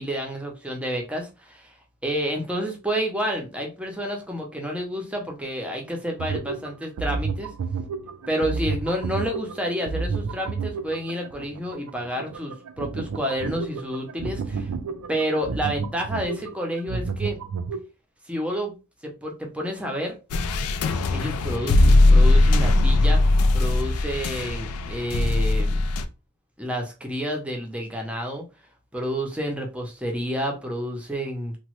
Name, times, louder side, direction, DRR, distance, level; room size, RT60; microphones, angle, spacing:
voice 1, 0.0-1.7 2.0-7.5 8.3-14.7 15.1-17.4 18.3-18.7 19.0-20.2 21.1-23.2 23.5-25.8 26.6-28.4 28.9-31.6, equal, 5° right, 1 dB, 0.6 m, -29 dB
sound 1, 6.2-17.8, right 4 dB, 75° right, 0.4 m, -31 dB
sound 2, 20.3-26.0, left 2 dB, 75° left, 0.4 m, -19 dB
3.0 x 2.2 x 3.0 m, 0.29 s
head